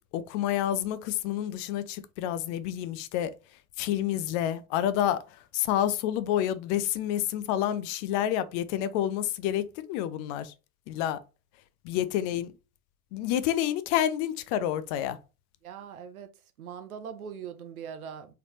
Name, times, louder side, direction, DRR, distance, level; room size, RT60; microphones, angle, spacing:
voice 1, 0.1-3.3 3.8-5.2 5.5-10.5 10.9-11.2 11.9-12.5 13.1-15.2, left 11 dB, 55° left, 0.6 m, -28 dB
voice 2, 15.6-16.3 16.6-18.3, right 7 dB, 80° right, 0.7 m, -41 dB
3.8 x 3.3 x 2.9 m
figure-of-eight pair, 55°, 43 cm